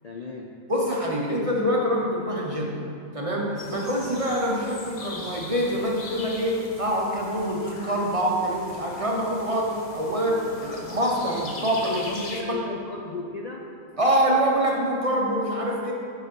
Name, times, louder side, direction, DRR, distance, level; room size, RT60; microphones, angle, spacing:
voice 1, 0.0-0.5 11.6-13.6, left 3 dB, 85° left, -1 dB, 0.3 m, -35 dB
voice 2, 0.7-2.8 3.1-12.6 14.0-15.9, equal, 35° right, -2 dB, 0.6 m, -25 dB
sound 1, 3.6-12.4, left 2 dB, 40° left, 0.7 m, -40 dB
8.1 x 4.8 x 5.9 m, 2.6 s
omnidirectional pair, 1.5 m